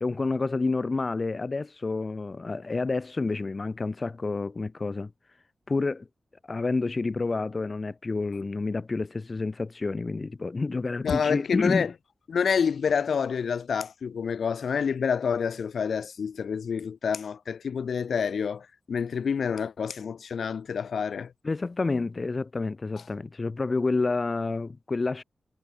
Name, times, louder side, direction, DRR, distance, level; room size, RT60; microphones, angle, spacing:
voice 1, 0.0-5.1 5.7-6.1 6.4-11.9 21.4-25.2, left 3 dB, 30° left, 1.4 m, -29 dB
voice 2, 11.0-11.9 12.3-21.3, left 6 dB, 75° left, 2.5 m, -28 dB
wide cardioid pair, 165°, 0 cm